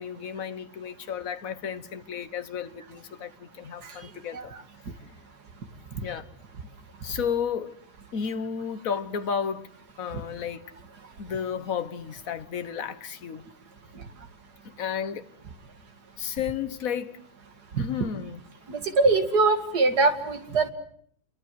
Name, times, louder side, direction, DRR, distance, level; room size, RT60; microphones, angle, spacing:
voice 1, 0.0-4.5 6.0-6.3 7.0-7.8 8.1-9.7 10.0-10.6 11.2-13.5 14.8-15.3 16.2-17.2 17.8-18.4, left 7 dB, 45° left, 1.5 m, -32 dB
voice 2, 18.7-20.7, right 3 dB, 50° right, 2.7 m, -22 dB
28.0 x 23.0 x 7.8 m
omnidirectional pair, 2.2 m